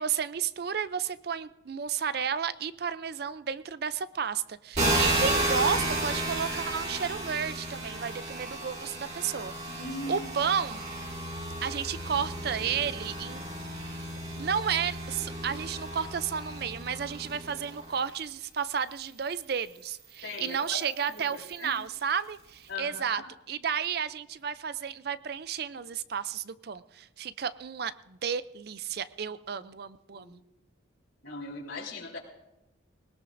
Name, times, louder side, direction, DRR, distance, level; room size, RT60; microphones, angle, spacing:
voice 1, 0.0-10.8 11.6-13.4 13.9-14.1 14.4-23.2 23.5-30.4, right 7 dB, 50° right, 15 dB, 0.4 m, -32 dB
sound 1, 4.7-18.1 18.8-21.8, right 1 dB, 35° right, 4.4 m, -33 dB
voice 2, 9.7-10.3 20.2-20.8 21.1-21.7 22.7-23.2 30.1-30.3 31.2-32.2, left 3 dB, 80° left, -1 dB, 3.5 m, -39 dB
20.5 x 18.5 x 2.6 m, 0.96 s
head